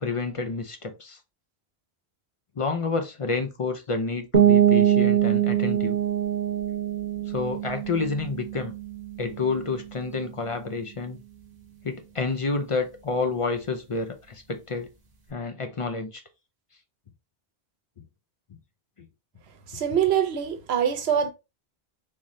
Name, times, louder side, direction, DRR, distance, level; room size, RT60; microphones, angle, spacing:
voice 1, 0.0-1.2 2.6-6.0 7.3-8.7 9.2-11.2 11.8-14.9 15.3-16.2 18.0-18.1 19.0-19.1, left 4 dB, 45° left, 0.4 m, -29 dB
sound 1, 4.3-9.9, right 10 dB, 45° right, 0.9 m, -23 dB
voice 2, 19.7-21.3, right 8 dB, 85° right, 1.0 m, -24 dB
3.7 x 3.0 x 2.6 m
omnidirectional pair, 1.1 m